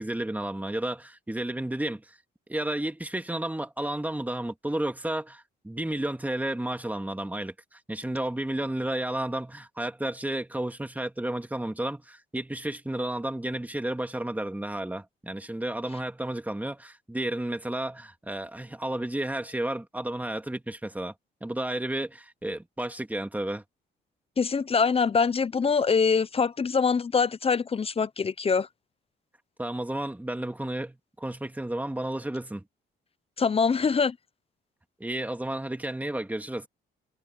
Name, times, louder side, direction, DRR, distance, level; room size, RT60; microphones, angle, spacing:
voice 1, 0.0-2.2 2.5-21.1 21.4-23.6 29.6-32.6 35.0-36.7, right 1 dB, 10° right, 2.1 m, -32 dB
voice 2, 24.4-28.7 33.4-34.2, left 5 dB, 30° left, 0.7 m, -24 dB
cardioid pair, 90°, 20 cm